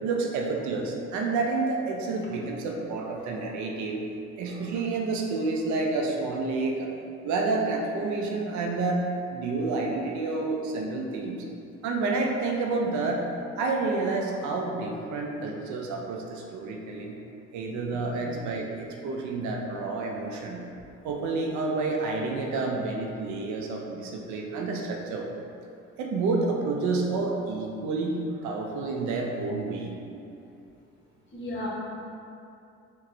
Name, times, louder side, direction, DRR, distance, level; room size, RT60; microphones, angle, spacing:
voice 1, 0.0-4.0 4.4-6.9 7.2-11.4 11.8-13.3 13.6-17.2 17.5-20.7 21.0-25.3 26.0-29.9, right 3 dB, 65° right, 0 dB, 0.5 m, -29 dB
voice 2, 31.3-31.7, left 1 dB, 35° left, -6 dB, 1.1 m, -35 dB
4.1 x 2.2 x 2.5 m, 2.6 s
hypercardioid pair, 60°, 31 cm